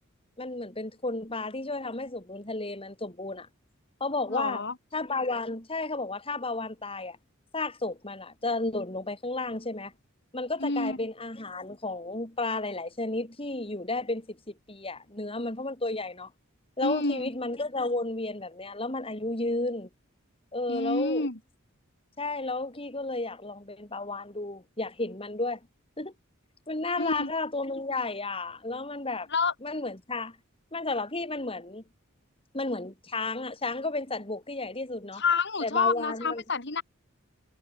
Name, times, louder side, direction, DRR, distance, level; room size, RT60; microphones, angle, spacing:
voice 1, 0.4-3.5 4.0-4.6 4.9-7.2 7.5-9.9 10.3-16.3 16.8-19.9 20.5-21.3 22.2-25.6 26.0-26.1 26.7-29.3 29.6-30.4 30.7-31.8 32.5-35.2 35.6-36.4, left 2 dB, 25° left, 4.4 m, -32 dB
voice 2, 4.3-4.7 10.6-11.0 16.8-17.3 20.7-21.4 27.0-27.3 29.3-29.5 35.2-36.8, left 4 dB, 55° left, 4.2 m, -28 dB
head